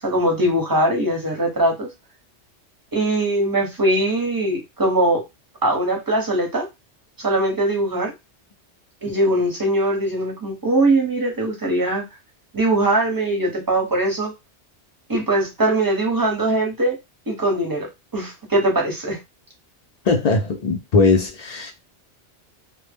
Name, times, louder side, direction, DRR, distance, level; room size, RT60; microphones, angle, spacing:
voice 1, 0.0-1.9 2.9-5.2 5.6-6.7 7.2-8.1 9.0-12.0 12.5-14.3 15.1-17.0 17.3-19.2, right 1 dB, 20° right, 0.7 m, -21 dB
voice 2, 20.1-21.7, left 4 dB, 60° left, 0.4 m, -19 dB
2.1 x 2.0 x 3.3 m
omnidirectional pair, 1.2 m